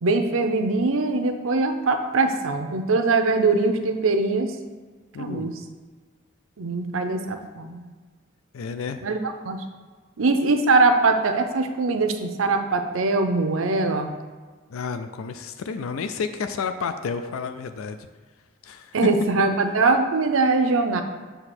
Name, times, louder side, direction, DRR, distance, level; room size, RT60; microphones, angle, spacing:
voice 1, 0.0-4.5 5.2-5.5 6.6-7.8 9.0-9.2 9.4-9.6 10.2-14.1 18.9-21.0, right 3 dB, 80° right, 6 dB, 0.7 m, -22 dB
voice 2, 5.1-5.5 8.5-9.1 14.7-18.1 18.6-19.1, left 5 dB, 90° left, 9 dB, 0.4 m, -30 dB
7.8 x 2.9 x 6.0 m, 1.4 s
head